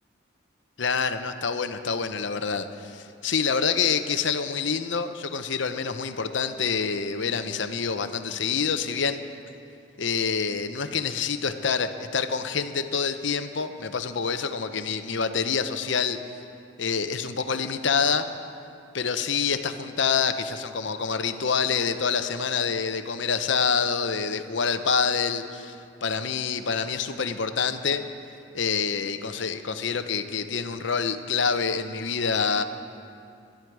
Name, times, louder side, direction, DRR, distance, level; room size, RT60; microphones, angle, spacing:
voice 1, 0.8-9.2 10.0-16.2 16.8-18.4 18.9-25.8 26.0-28.0 28.5-32.6, left 6 dB, 65° left, 9 dB, 0.7 m, -27 dB
18.5 x 12.0 x 4.7 m, 2.5 s
head